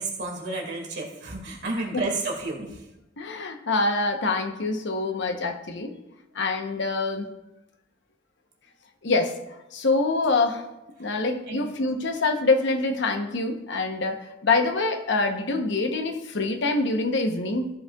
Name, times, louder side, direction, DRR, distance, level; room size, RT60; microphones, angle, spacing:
voice 1, 0.0-2.9 11.5-11.7, right 2 dB, 60° right, 0 dB, 2.0 m, -31 dB
voice 2, 3.2-5.9 6.3-7.2 9.0-9.4 9.7-10.6 11.0-17.7, left 3 dB, 65° left, 5 dB, 0.9 m, -25 dB
14.5 x 5.4 x 2.3 m, 0.93 s
head